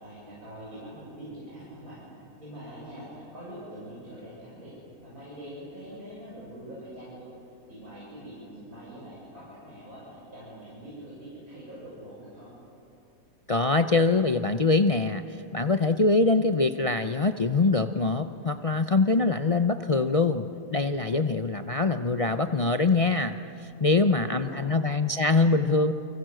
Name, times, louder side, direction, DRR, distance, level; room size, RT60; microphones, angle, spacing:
voice 1, 0.0-2.0 2.4-4.7 5.0-7.3 7.7-12.5 23.8-24.6, equal, 70° right, -7 dB, 7.2 m, -44 dB
voice 2, 13.5-15.2 15.5-23.4 23.8-25.9, left 3 dB, 40° left, 8 dB, 0.5 m, -23 dB
30.0 x 24.5 x 7.7 m, 2.7 s
omnidirectional pair, 1.6 m